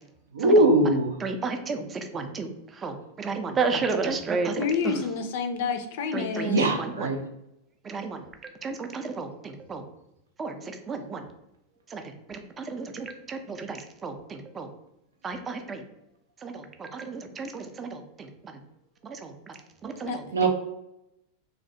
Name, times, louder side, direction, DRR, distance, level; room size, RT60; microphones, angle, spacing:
voice 1, 0.3-1.2 6.4-7.2 20.3-20.5, right 2 dB, 90° right, 4 dB, 0.4 m, -21 dB
voice 2, 1.2-1.8 2.1-2.5 2.8-4.9 6.1-7.1 7.9-8.2 8.6-9.8 10.4-10.6 10.9-11.2 11.9-12.0 12.3-14.7 15.2-15.8 16.4-18.0 19.0-19.3 19.8-20.2, right 4 dB, 25° right, 5 dB, 0.4 m, -32 dB
voice 3, 4.6-6.7 20.0-20.2, left 5 dB, 65° left, 8 dB, 0.3 m, -29 dB
2.2 x 2.1 x 2.7 m, 0.85 s
hypercardioid pair, 100°, 0 cm